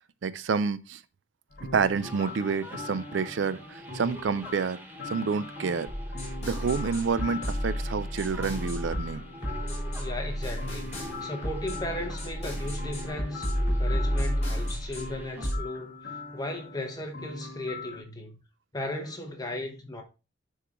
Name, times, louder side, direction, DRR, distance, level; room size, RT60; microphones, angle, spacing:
voice 1, 0.2-1.0 1.7-4.8 5.1-5.9 6.4-9.2, right 5 dB, 75° right, 0.4 m, -28 dB
sound 1, 1.5-18.0, left 3 dB, 65° left, 1.6 m, -42 dB
sound 2, 1.9-15.5, right 1 dB, 10° right, 1.1 m, -46 dB
sound 3, 5.9-15.6, equal, 35° left, 4.3 m, -31 dB
voice 2, 10.0-18.4 18.7-20.0, left 1 dB, 20° left, 1.1 m, -36 dB
10.0 x 3.8 x 3.0 m
head